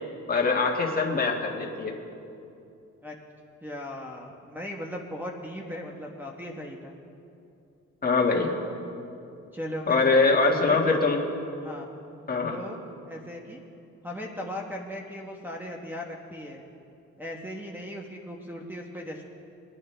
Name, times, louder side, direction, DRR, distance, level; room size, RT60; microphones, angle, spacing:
voice 1, 0.3-1.9 8.0-8.5 9.9-11.2 12.3-12.6, left 3 dB, 30° left, -1 dB, 1.8 m, -23 dB
voice 2, 3.6-6.9 9.5-10.4 10.7-11.0 11.6-11.9 12.5-12.8 13.1-13.6 14.0-16.6 17.2-19.2, equal, 5° right, -3 dB, 1.1 m, -38 dB
22.5 x 9.3 x 3.3 m, 2.7 s
cardioid pair, 90°, 30 cm